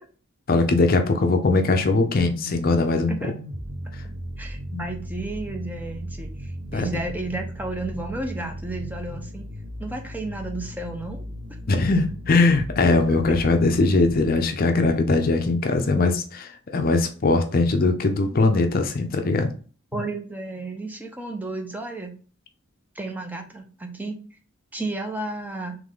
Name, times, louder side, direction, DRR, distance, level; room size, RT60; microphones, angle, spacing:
voice 1, 0.5-3.1 4.7-4.8 6.7-6.8 11.7-19.5, left 3 dB, 45° left, 6 dB, 0.5 m, -21 dB
sound 1, 1.4-14.3, equal, 50° right, 1.0 m, -36 dB
voice 2, 4.4-9.5 9.8-11.2 13.1-13.2 14.7-14.8 19.9-22.1 22.9-24.2 24.7-25.8, right 2 dB, 10° right, 3 dB, 0.6 m, -32 dB
3.7 x 3.2 x 3.6 m, 0.39 s
head